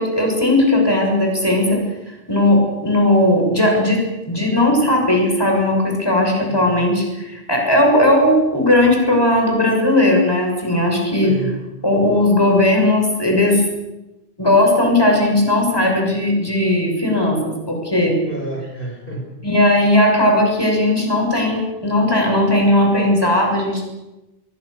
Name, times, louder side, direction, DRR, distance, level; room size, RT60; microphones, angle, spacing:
voice 1, 0.0-11.3 11.8-13.6 14.4-18.2 19.4-23.8, left 1 dB, 25° left, 1 dB, 6.7 m, -17 dB
voice 2, 6.4-6.8 11.2-11.6 18.2-19.3, right 2 dB, 60° left, 1 dB, 5.2 m, -30 dB
27.0 x 23.0 x 6.7 m, 0.99 s
omnidirectional pair, 1.0 m